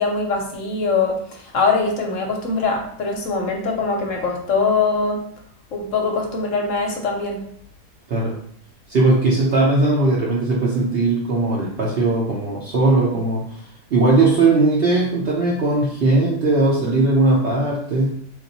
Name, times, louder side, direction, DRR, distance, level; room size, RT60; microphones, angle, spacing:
voice 1, 0.0-5.2 5.7-7.4, left 4 dB, 60° left, 1 dB, 0.9 m, -22 dB
voice 2, 8.9-13.6 13.9-18.1, right 2 dB, 65° right, -4 dB, 0.6 m, -18 dB
3.3 x 2.5 x 4.0 m, 0.65 s
omnidirectional pair, 1.8 m